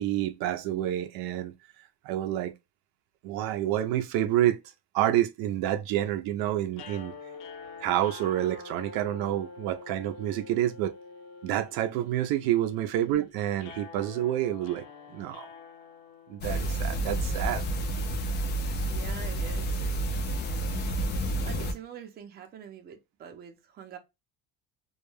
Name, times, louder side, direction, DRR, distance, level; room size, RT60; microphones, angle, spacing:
voice 1, 0.0-1.5 2.0-2.5 3.2-4.6 4.9-7.1 7.8-11.0 11.4-14.8 15.1-15.5 16.3-17.7, right 12 dB, 75° right, 0.5 m, -28 dB
sound 1, 6.7-16.9, left 4 dB, 60° left, 0.7 m, -47 dB
sound 2, 16.4-21.7, right 1 dB, 30° left, 0.3 m, -30 dB
voice 2, 18.9-19.8 21.4-24.0, right 8 dB, 25° right, 0.5 m, -45 dB
2.2 x 2.1 x 3.0 m
cardioid pair, 170°, 36 cm